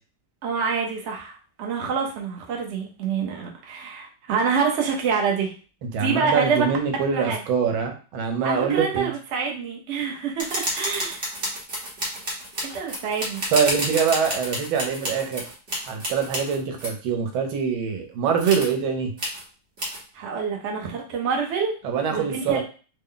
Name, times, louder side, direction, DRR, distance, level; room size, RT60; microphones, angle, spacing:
voice 1, 0.4-5.5 6.0-6.6 7.1-7.4 8.4-11.2 12.6-13.4 20.1-21.7 22.1-22.6, right 5 dB, 65° right, 0 dB, 0.7 m, -26 dB
voice 2, 5.8-9.1 13.5-15.4 15.9-19.1 21.8-22.6, right 6 dB, 80° right, 4 dB, 1.5 m, -24 dB
sound 1, 10.4-16.9 18.4-18.7 19.2-19.4 19.8-20.0, equal, 40° right, 1.0 m, -30 dB
3.6 x 2.1 x 3.8 m, 0.37 s
omnidirectional pair, 2.2 m